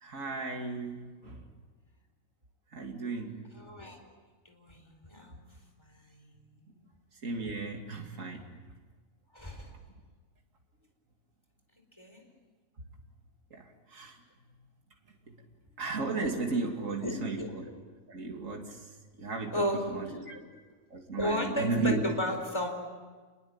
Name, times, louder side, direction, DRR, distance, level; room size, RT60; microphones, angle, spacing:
voice 1, 0.0-1.4 2.7-3.4 7.2-8.4 13.5-13.6 13.9-14.2 15.8-17.7 18.1-18.8 19.2-19.6 19.9-20.4 20.9-22.1, right 3 dB, 60° right, 2 dB, 3.0 m, -34 dB
voice 2, 3.5-4.0 4.4-5.4 5.8-6.8 9.3-9.7 12.0-12.2 16.9-17.5 19.5-20.4 21.2-22.7, equal, 20° left, 3 dB, 4.4 m, -35 dB
28.0 x 21.5 x 8.8 m, 1.4 s
omnidirectional pair, 1.5 m